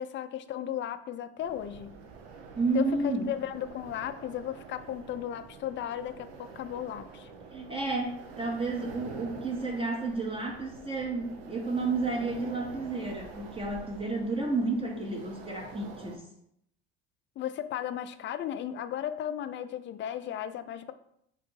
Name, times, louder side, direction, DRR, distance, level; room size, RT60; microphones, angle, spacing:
voice 1, 0.0-1.9 2.7-7.3 17.4-20.9, left 10 dB, 40° left, 11 dB, 0.4 m, -35 dB
sound 1, 1.4-16.2, right 5 dB, 80° right, 0.6 m, -47 dB
voice 2, 2.6-3.3 7.5-16.3, right 3 dB, 20° right, 1 dB, 0.7 m, -31 dB
3.7 x 2.6 x 4.5 m, 0.73 s
hypercardioid pair, 70°, 30 cm